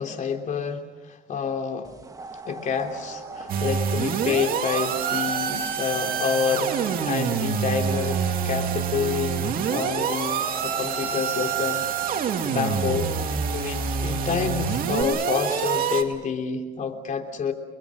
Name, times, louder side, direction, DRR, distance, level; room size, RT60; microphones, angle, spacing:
voice 1, 0.0-1.9 2.5-17.5, left 6 dB, 50° left, 4 dB, 3.2 m, -28 dB
sound 1, 1.8-15.0, right 4 dB, 20° right, 1.8 m, -39 dB
sound 2, 2.9-16.0, right 8 dB, 90° right, 3.8 m, -45 dB
sound 3, 3.5-16.0, right 7 dB, 60° right, 2.5 m, -27 dB
30.0 x 21.5 x 6.4 m, 1.2 s
cardioid pair, 110°, 17 cm